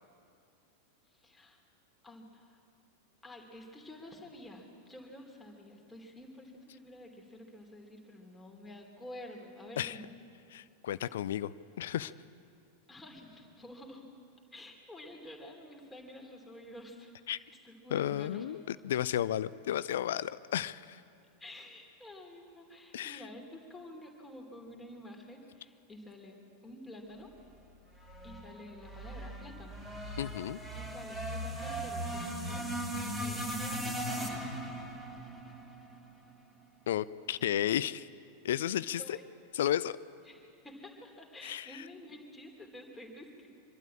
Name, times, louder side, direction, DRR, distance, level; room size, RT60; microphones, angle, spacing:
voice 1, 1.1-1.6 2.0-2.6 3.2-10.1 12.9-14.1 14.5-18.6 21.4-27.3 28.2-29.8 30.7-32.7 33.0-34.5 39.0-39.2 40.2-43.5, left 1 dB, 10° left, 0 dB, 2.9 m, -50 dB
voice 2, 10.5-11.5 11.8-12.1 17.3-17.4 17.9-21.0 22.9-23.2 30.2-30.6 36.9-38.1 38.4-39.2 39.5-40.0 41.4-41.8, left 11 dB, 60° left, 17 dB, 0.4 m, -33 dB
sound 1, 28.0-36.3, right 1 dB, 10° right, 3.0 m, -38 dB
25.0 x 12.5 x 8.6 m, 2.4 s
figure-of-eight pair, 90°, 0 cm